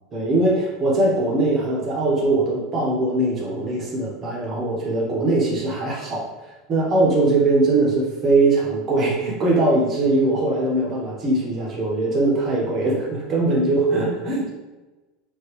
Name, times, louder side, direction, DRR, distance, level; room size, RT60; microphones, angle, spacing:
voice 1, 0.1-6.3 6.7-14.5, right 2 dB, 20° right, -4 dB, 1.0 m, -21 dB
5.1 x 2.6 x 3.1 m, 1.1 s
supercardioid pair, 180°, 0 cm